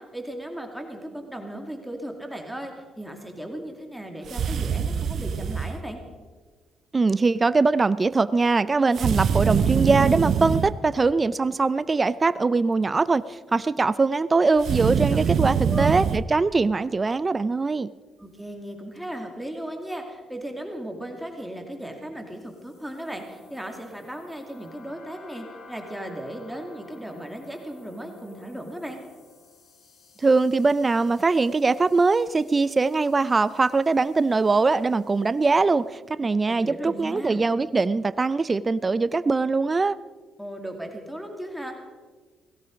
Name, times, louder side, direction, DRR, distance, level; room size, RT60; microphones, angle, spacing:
voice 1, 0.0-6.0 15.0-15.3 15.6-16.1 18.2-29.0 36.5-37.4 40.4-41.8, right 1 dB, ahead, 3 dB, 2.3 m, -36 dB
sound 1, 4.3-5.8 9.0-10.8 14.6-16.2, right 7 dB, 60° right, 0.7 m, -24 dB
voice 2, 6.9-17.9 30.2-40.0, right 3 dB, 30° right, 15 dB, 0.5 m, -22 dB
sound 2, 22.4-35.8, left 5 dB, 55° left, 3.1 m, -54 dB
18.0 x 15.5 x 5.1 m, 1.4 s
cardioid pair, 90°, 0 cm